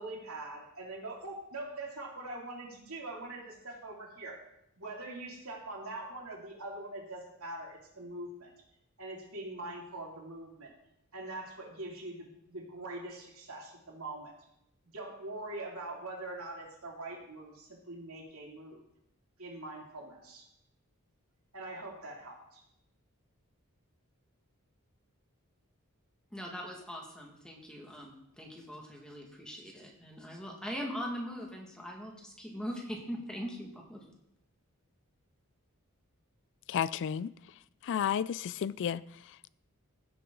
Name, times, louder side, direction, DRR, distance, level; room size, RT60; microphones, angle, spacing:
voice 1, 0.0-4.4 4.8-8.5 9.0-10.7 11.1-14.3 14.9-18.8 19.4-20.4 21.5-22.6, right 2 dB, 70° right, 2.9 m, -43 dB
voice 2, 26.3-34.0, equal, 5° left, 1.8 m, -41 dB
voice 3, 36.7-39.5, left 8 dB, 55° left, 0.3 m, -33 dB
16.0 x 6.8 x 3.8 m
head